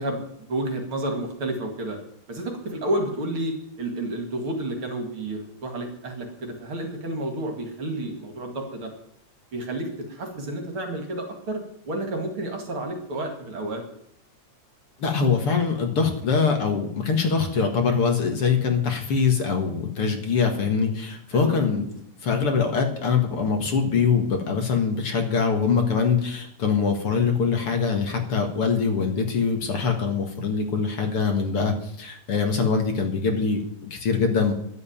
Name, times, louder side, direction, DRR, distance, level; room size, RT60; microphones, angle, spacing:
voice 1, 0.0-2.0 2.3-8.9 9.5-13.8 21.3-21.7, right 1 dB, 50° right, 4 dB, 2.8 m, -30 dB
voice 2, 15.0-21.9 22.2-34.5, left 5 dB, 55° left, 4 dB, 2.4 m, -23 dB
11.5 x 8.1 x 8.9 m, 0.73 s
omnidirectional pair, 3.3 m